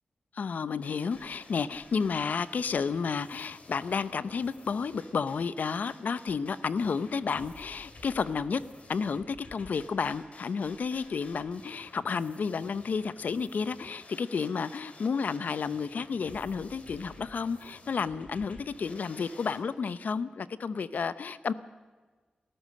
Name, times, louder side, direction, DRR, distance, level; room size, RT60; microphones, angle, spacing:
voice 1, 0.3-8.6 8.9-21.5, left 5 dB, 75° left, 15 dB, 0.7 m, -31 dB
sound 1, 0.8-19.6, left 3 dB, 50° left, 2.8 m, -53 dB
29.5 x 13.5 x 6.6 m, 1.4 s
wide cardioid pair, 155°, 3 cm